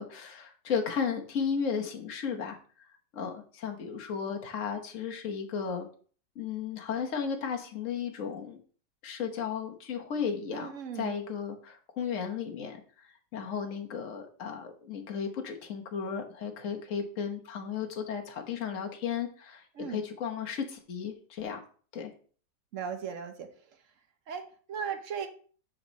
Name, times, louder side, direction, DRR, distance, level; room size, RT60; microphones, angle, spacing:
voice 1, 0.0-2.6 3.1-5.9 6.4-8.6 9.0-12.8 13.3-19.6 19.9-21.6 21.9-22.1, left 6 dB, 50° left, 3 dB, 1.2 m, -34 dB
voice 2, 10.5-11.2 19.8-20.0 22.7-23.5 24.3-25.3, right 7 dB, 55° right, 7 dB, 0.9 m, -37 dB
6.6 x 4.7 x 4.0 m, 0.43 s
omnidirectional pair, 1.9 m